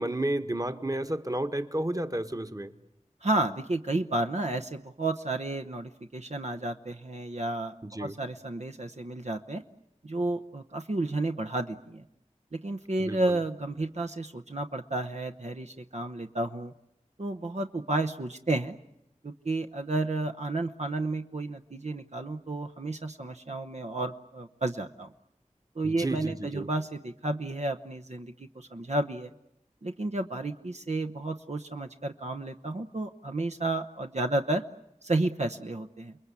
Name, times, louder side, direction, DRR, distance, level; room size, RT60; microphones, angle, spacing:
voice 1, 0.0-2.7 7.9-8.1 13.1-13.4 25.8-26.7, right 1 dB, 25° right, 8 dB, 1.5 m, -31 dB
voice 2, 3.2-9.6 10.0-12.0 12.5-16.7 17.2-18.7 19.2-25.1 25.8-29.3 29.8-34.6 35.0-36.2, right 2 dB, 60° right, 6 dB, 1.0 m, -32 dB
29.0 x 21.0 x 8.4 m, 0.82 s
wide cardioid pair, 50°, 13 cm